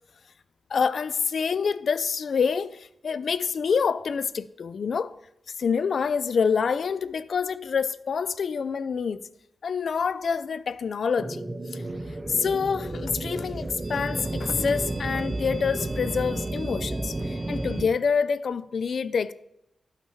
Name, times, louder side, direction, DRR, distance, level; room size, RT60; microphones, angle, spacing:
voice 1, 0.7-5.2 5.6-9.3 9.6-11.8 12.3-19.3, left 6 dB, 65° left, 0.3 m, -27 dB
sound 1, 11.2-17.9, right 2 dB, 25° right, 0.5 m, -32 dB
12.5 x 5.6 x 3.1 m
wide cardioid pair, 120°, 0 cm